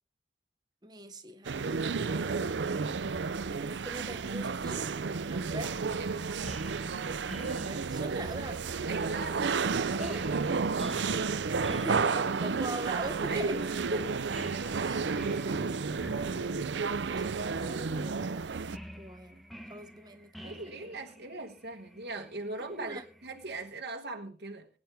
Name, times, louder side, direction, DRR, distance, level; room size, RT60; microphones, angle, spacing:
voice 1, 0.8-2.9 3.8-4.9 5.3-5.8 7.4-9.4 9.8-10.4 11.7-13.6 14.8-19.4 19.7-20.9 22.8-23.0, right 1 dB, 25° right, 1.3 m, -43 dB
sound 1, 1.4-18.8, right 4 dB, 90° right, 0.6 m, -32 dB
voice 2, 5.5-6.5 8.9-10.7 11.5-11.9 13.3-14.2 14.5-14.8 20.4-24.7, right 2 dB, 70° right, 1.4 m, -39 dB
sound 2, 6.4-23.7, equal, ahead, 1.1 m, -50 dB
20.5 x 9.8 x 3.5 m
head